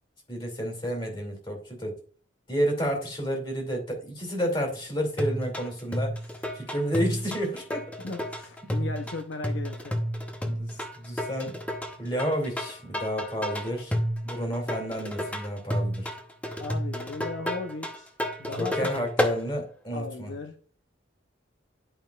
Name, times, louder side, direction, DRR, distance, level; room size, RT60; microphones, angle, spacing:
voice 1, 0.3-2.0 2.5-6.2 6.5-7.9 10.4-11.6 12.0-14.0 14.2-16.2 18.6-20.3, equal, 25° left, 2.6 m, -30 dB
sound 1, 5.2-19.4, equal, 5° left, 0.8 m, -31 dB
voice 2, 8.0-10.0 16.6-18.1 18.4-18.9 19.9-20.6, left 3 dB, 80° left, 0.8 m, -37 dB
11.0 x 5.4 x 2.4 m
head